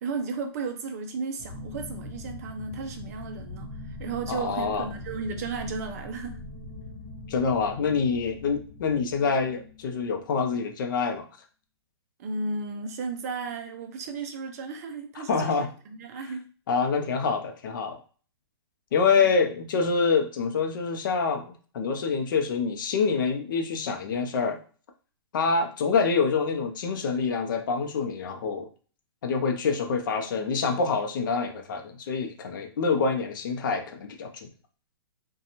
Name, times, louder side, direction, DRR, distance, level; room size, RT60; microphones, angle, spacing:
voice 1, 0.0-6.4 12.2-16.5 19.2-19.3, right 4 dB, 40° right, 6 dB, 0.4 m, -34 dB
sound 1, 1.4-10.9, left 2 dB, 25° left, 1.0 m, -42 dB
voice 2, 4.3-4.9 7.3-11.3 15.2-15.7 16.7-18.0 18.9-24.6 25.3-28.7 29.2-34.5, left 5 dB, 50° left, 4 dB, 0.6 m, -26 dB
2.5 x 2.2 x 2.9 m, 0.40 s
hypercardioid pair, 160°, 13 cm